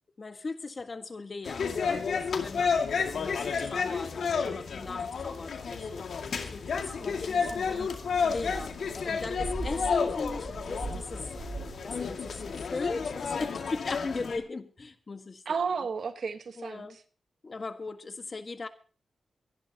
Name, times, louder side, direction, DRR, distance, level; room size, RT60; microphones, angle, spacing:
voice 1, 0.2-11.3 11.8-15.9 16.6-17.0 17.4-18.7, left 3 dB, 45° left, 8 dB, 1.6 m, -38 dB
sound 1, 1.4-14.4, left 5 dB, 75° left, 2.2 m, -31 dB
sound 2, 6.7-13.5, right 2 dB, 35° right, 5.6 m, -42 dB
voice 2, 15.4-17.0, right 5 dB, 70° right, 9 dB, 1.4 m, -32 dB
23.5 x 11.0 x 2.9 m, 0.38 s
cardioid pair, 65°, 0 cm